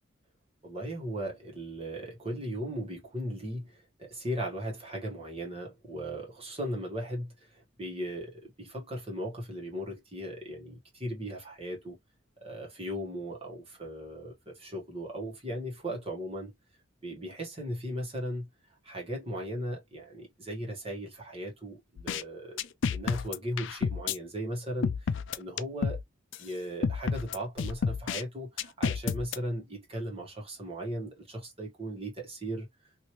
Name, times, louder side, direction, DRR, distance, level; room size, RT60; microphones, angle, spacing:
voice 1, 0.6-11.9 12.4-16.5 17.0-18.5 18.8-22.6 22.9-26.0 26.4-32.7, equal, 30° right, 1.3 m, -37 dB
sound 1, 22.0-22.2 22.6-24.2 24.8-26.0 26.3-26.4 26.8-28.2 28.6-29.4, left 6 dB, 60° left, 0.3 m, -30 dB
3.1 x 2.7 x 2.9 m
head